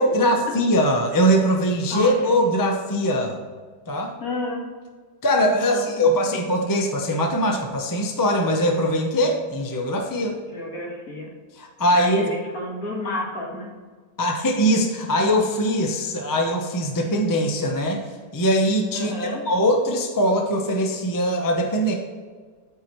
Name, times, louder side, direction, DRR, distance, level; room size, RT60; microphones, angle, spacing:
voice 1, 0.0-3.4 3.9-4.1 5.2-10.4 11.6-12.2 14.2-18.0 18.3-21.9, equal, 25° left, 1 dB, 0.4 m, -21 dB
voice 2, 4.2-4.6 5.5-5.8 6.1-6.4 10.4-11.3 11.9-13.7 18.9-19.4, left 2 dB, 55° left, -1 dB, 2.0 m, -31 dB
14.0 x 4.7 x 3.1 m, 1.5 s
omnidirectional pair, 1.9 m